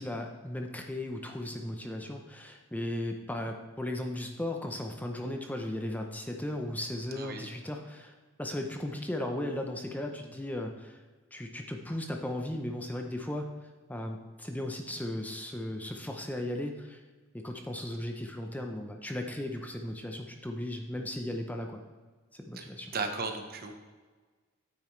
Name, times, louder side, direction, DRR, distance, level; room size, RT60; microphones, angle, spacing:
voice 1, 0.0-11.0 11.3-13.5 13.9-17.0 17.3-21.8 22.3-22.9, left 1 dB, 10° left, 3 dB, 0.6 m, -36 dB
voice 2, 7.1-7.5 22.5-23.7, right 3 dB, 50° right, 5 dB, 1.0 m, -36 dB
8.8 x 8.7 x 3.2 m, 1.4 s
head